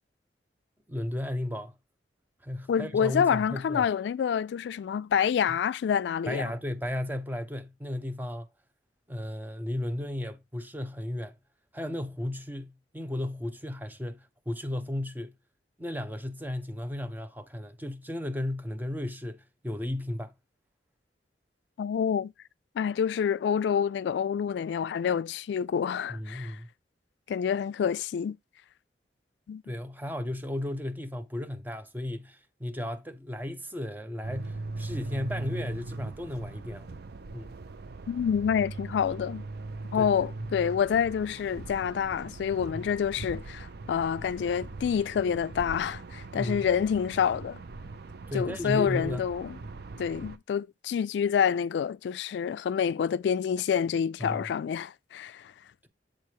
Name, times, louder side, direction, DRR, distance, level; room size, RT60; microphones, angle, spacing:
voice 1, 0.9-1.7 2.4-3.9 5.5-5.6 6.3-8.5 9.1-11.4 11.7-15.3 15.8-20.3 26.1-26.7 29.7-36.9 37.3-37.5 40.0-40.3 42.7-42.8 46.3-46.7 48.3-49.2 54.2-54.4, left 1 dB, 10° right, 0.7 m, -34 dB
voice 2, 2.7-6.4 21.8-22.3 22.8-26.6 27.3-28.4 29.5-29.6 38.1-39.4 39.9-47.6 48.3-49.6 50.0-55.5, left 7 dB, 75° left, 0.3 m, -27 dB
sound 1, 34.2-50.4, right 2 dB, 65° right, 0.6 m, -40 dB
7.3 x 3.2 x 4.6 m
head